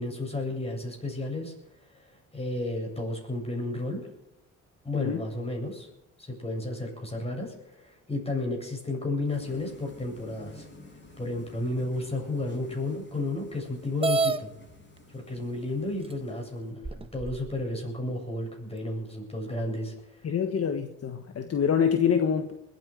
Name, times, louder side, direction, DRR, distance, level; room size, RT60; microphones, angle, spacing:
voice 1, 0.0-1.5 2.0-4.0 4.8-5.9 6.2-10.7 11.2-14.5 15.1-20.3, left 2 dB, 20° left, 1 dB, 8.0 m, -32 dB
sound 1, 9.3-16.7, left 2 dB, 35° left, 7.5 m, -51 dB
sound 2, 14.0-14.4 15.4-15.5 16.1-16.2 16.8-17.5, right 3 dB, 20° right, 1.1 m, -27 dB
voice 2, 20.2-22.5, left 7 dB, 55° left, 6 dB, 1.5 m, -26 dB
21.0 x 9.6 x 6.5 m, 0.90 s
cardioid pair, 90°, 30 cm